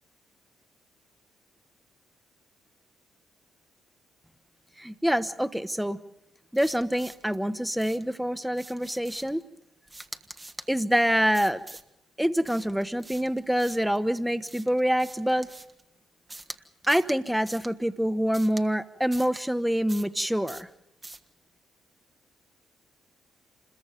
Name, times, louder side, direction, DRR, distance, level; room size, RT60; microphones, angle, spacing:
voice 1, 4.8-6.0 6.5-9.4 10.7-11.6 12.2-15.5 16.9-20.7, equal, 5° right, 12 dB, 1.3 m, -26 dB
sound 1, 6.5-7.4 7.8-8.1 8.5-9.4 9.9-10.7 11.3-11.9 12.4-14.0 14.5-15.8 16.3-16.6 16.8-17.2 17.5-17.7 18.3-18.7 19.1-19.4 19.9-20.2 20.5-20.7 21.0-21.3, right 2 dB, 20° right, 1.5 m, -44 dB
28.0 x 22.0 x 5.3 m, 0.86 s
figure-of-eight pair, 40°, 0 cm